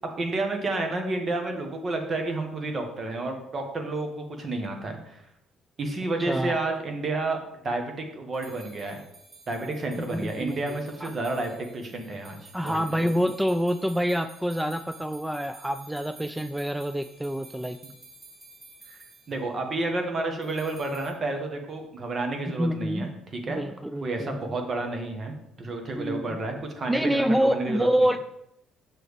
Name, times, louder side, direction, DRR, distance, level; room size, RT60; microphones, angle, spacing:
voice 1, 0.2-5.2 5.8-9.0 9.5-13.0 18.9-19.0 19.3-23.6 24.0-27.9, right 2 dB, 40° right, 4 dB, 1.6 m, -30 dB
sound 1, 8.3-19.4 20.4-21.1, right 3 dB, 25° right, 2.3 m, -51 dB
voice 2, 10.1-11.1 12.5-17.8 22.6-23.1 23.5-24.5 26.0-26.4 26.9-28.2, equal, 5° right, 9 dB, 0.4 m, -27 dB
6.7 x 6.2 x 3.4 m, 0.81 s
hypercardioid pair, 60°, 0 cm